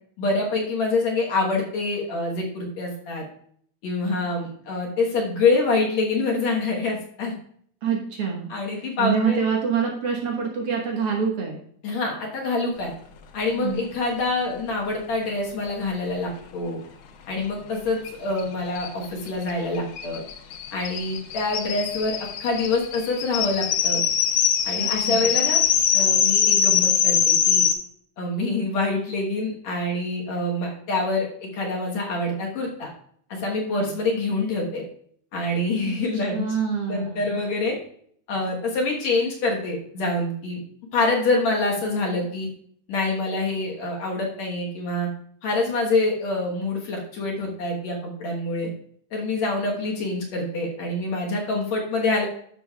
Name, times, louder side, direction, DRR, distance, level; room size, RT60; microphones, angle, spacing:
voice 1, 0.2-3.2 3.8-7.3 8.5-9.4 11.8-12.9 13.3-16.8 17.3-20.2 20.7-24.0 24.6-25.6 25.9-27.6 28.2-32.9 33.3-34.8 35.3-36.5 36.9-37.8 38.3-40.6 40.9-42.5 42.9-45.1 45.4-48.7 49.1-52.3, left 3 dB, 60° left, -1 dB, 2.1 m, -26 dB
voice 2, 7.8-8.5 9.0-11.6 13.5-13.8 24.8-25.3 33.7-33.9 35.8-37.4, right 6 dB, 65° right, -1 dB, 1.4 m, -26 dB
sound 1, 18.0-18.1 18.4-18.5 18.7-27.7, left 8 dB, 75° left, 1.9 m, -22 dB
13.0 x 6.1 x 2.3 m, 0.62 s
omnidirectional pair, 4.3 m